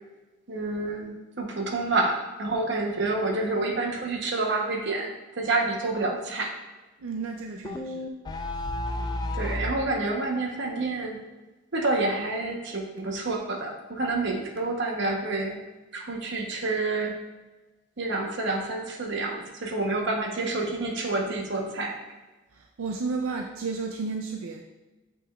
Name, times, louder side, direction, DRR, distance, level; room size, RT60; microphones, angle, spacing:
voice 1, 0.5-6.5 9.4-11.2 11.7-15.6 15.9-17.2 18.0-22.0, right 2 dB, 60° right, 2 dB, 0.9 m, -28 dB
voice 2, 7.0-8.1 22.5-24.6, right 4 dB, 85° right, 3 dB, 0.4 m, -32 dB
sound 1, 7.6-9.8, left 1 dB, 20° left, 0.3 m, -31 dB
6.8 x 6.0 x 2.4 m, 1.2 s
head